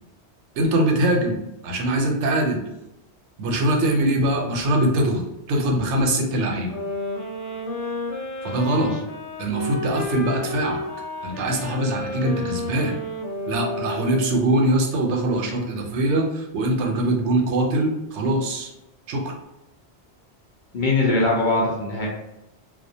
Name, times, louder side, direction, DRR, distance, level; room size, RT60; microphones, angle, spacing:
voice 1, 0.5-1.4 1.6-2.6 3.4-6.7 8.4-8.9 9.4-10.8 11.2-13.0 13.5-18.7 19.1-19.3, right 1 dB, 90° right, 1 dB, 0.9 m, -22 dB
sound 1, 6.7-14.7, left 2 dB, 85° left, 1.0 m, -31 dB
voice 2, 20.7-22.1, left 2 dB, 55° left, -2 dB, 0.6 m, -21 dB
2.3 x 2.1 x 2.6 m, 0.91 s
omnidirectional pair, 1.2 m